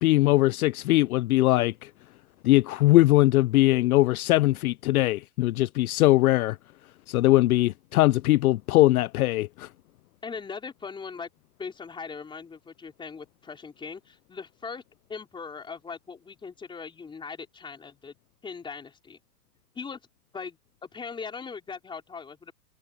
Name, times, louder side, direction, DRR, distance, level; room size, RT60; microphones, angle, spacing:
voice 1, 0.0-1.9 2.4-6.6 7.1-9.7, left 18 dB, 65° left, 0.5 m, -21 dB
voice 2, 10.2-11.3 11.6-14.8 15.1-18.1 18.4-19.2 19.7-20.0 20.3-22.5, left 5 dB, 10° left, 4.8 m, -39 dB
supercardioid pair, 160°, 47 cm